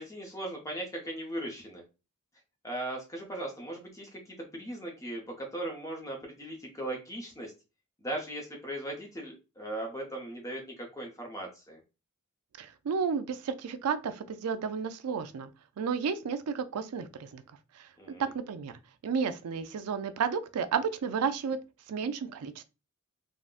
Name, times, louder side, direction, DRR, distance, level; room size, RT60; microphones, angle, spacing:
voice 1, 0.0-1.8 2.6-4.2 4.5-7.5 8.0-11.8 18.0-18.3, right 1 dB, 15° left, 0.6 m, -38 dB
voice 2, 12.6-15.5 15.8-17.4 17.8-17.9 18.3-18.7 19.0-21.6 21.9-22.6, right 6 dB, 80° right, 0.4 m, -32 dB
3.7 x 2.1 x 2.4 m
head